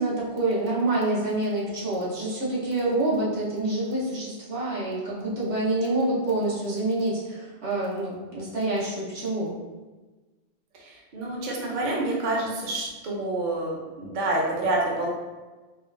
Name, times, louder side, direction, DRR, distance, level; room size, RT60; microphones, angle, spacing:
voice 1, 0.0-9.5, right 2 dB, 90° right, -6 dB, 1.2 m, -27 dB
voice 2, 10.8-15.1, right 2 dB, 50° right, -2 dB, 0.7 m, -28 dB
4.3 x 2.3 x 2.5 m, 1.2 s
omnidirectional pair, 1.1 m